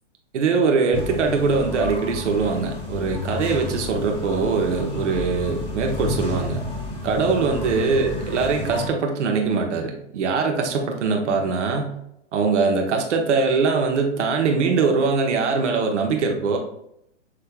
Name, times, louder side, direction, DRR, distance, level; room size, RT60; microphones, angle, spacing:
voice 1, 0.3-6.6 7.0-11.9 12.3-16.6, right 4 dB, 75° right, 2 dB, 1.2 m, -22 dB
sound 1, 0.9-8.9, left 2 dB, 15° left, 1.4 m, -31 dB
6.4 x 3.4 x 2.3 m, 0.76 s
hypercardioid pair, 130°, 36 cm